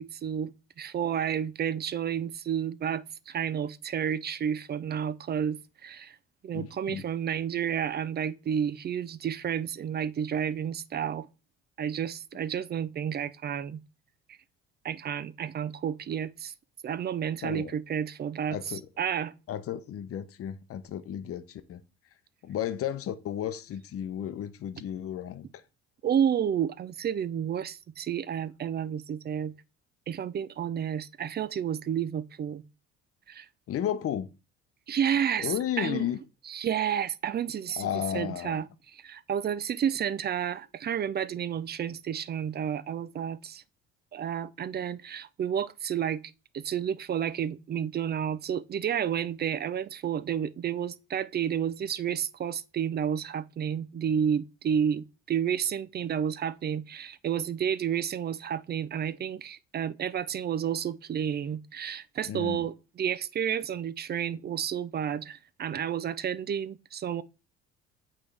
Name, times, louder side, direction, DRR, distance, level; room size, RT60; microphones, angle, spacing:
voice 1, 0.0-6.2 6.4-11.3 11.8-13.8 14.8-16.5 16.8-19.3 26.0-29.5 30.1-32.6 33.3-33.5 34.9-36.1 36.5-38.7 38.9-43.6 44.1-46.2 46.5-67.2, right 8 dB, 35° right, 0.4 m, -31 dB
voice 2, 6.5-7.0 17.4-17.7 18.5-18.8 19.5-21.8 22.4-25.6 33.7-34.3 35.4-36.2 37.8-38.6 62.3-62.7, left 10 dB, 50° left, 0.7 m, -33 dB
8.2 x 3.6 x 3.3 m
hypercardioid pair, 65°, 30 cm